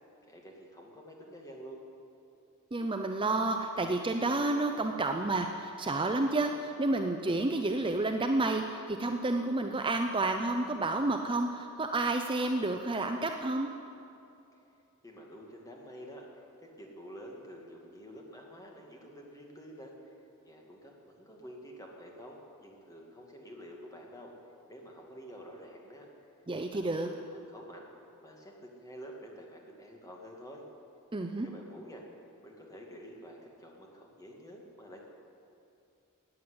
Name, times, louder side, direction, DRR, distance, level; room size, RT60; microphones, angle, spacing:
voice 1, 0.2-1.8 15.0-20.2 20.4-24.3 24.7-26.1 26.7-27.9 28.2-30.6 31.4-32.0 32.4-35.0, equal, 15° left, 0 dB, 2.1 m, -49 dB
voice 2, 2.7-13.7 26.5-27.1 31.1-31.5, right 2 dB, 25° right, 4 dB, 0.6 m, -30 dB
14.5 x 9.3 x 9.6 m, 2.7 s
head